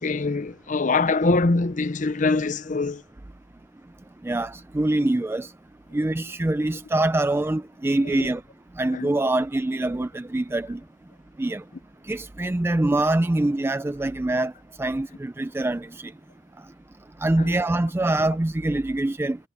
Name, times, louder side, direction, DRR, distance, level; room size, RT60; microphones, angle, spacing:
voice 1, 0.0-3.0 5.0-5.1 8.0-8.3 8.9-9.1 17.4-17.6, left 3 dB, 40° left, 0.7 m, -24 dB
voice 2, 4.2-5.5 5.9-8.4 8.8-10.8 11.4-11.6 12.1-14.5 14.8-15.9 17.2-19.4, right 2 dB, 10° right, 0.3 m, -24 dB
head